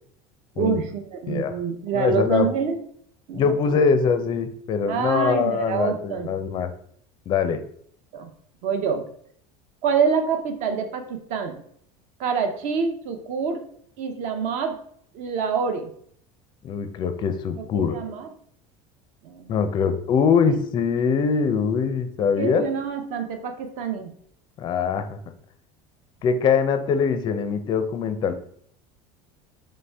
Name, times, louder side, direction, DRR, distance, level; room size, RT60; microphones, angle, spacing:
voice 1, 0.6-2.8 3.3-3.8 4.9-6.3 8.1-8.3 8.6-9.0 9.8-11.6 12.2-13.7 14.0-14.8 15.1-15.9 17.6-18.3 19.2-19.5 22.4-24.1, right 6 dB, 55° right, 6 dB, 0.7 m, -26 dB
voice 2, 1.9-2.5 3.3-6.7 7.3-7.6 16.6-18.0 19.5-22.6 24.6-25.2 26.2-28.3, left 6 dB, 30° left, 9 dB, 0.4 m, -23 dB
4.2 x 3.2 x 3.4 m, 0.62 s
cardioid pair, 155°, 15 cm